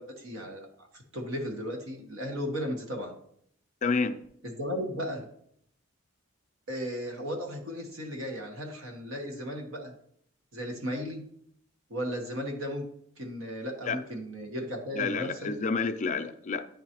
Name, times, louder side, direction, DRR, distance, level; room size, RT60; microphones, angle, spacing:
voice 1, 0.0-3.2 4.4-5.3 6.7-9.9 10.5-11.2 11.9-12.9 13.2-15.5, equal, 75° right, 3 dB, 1.1 m, -35 dB
voice 2, 3.8-4.2 13.9-14.0 14.9-16.7, left 4 dB, 35° left, 9 dB, 0.4 m, -29 dB
9.6 x 3.8 x 2.9 m, 0.69 s
head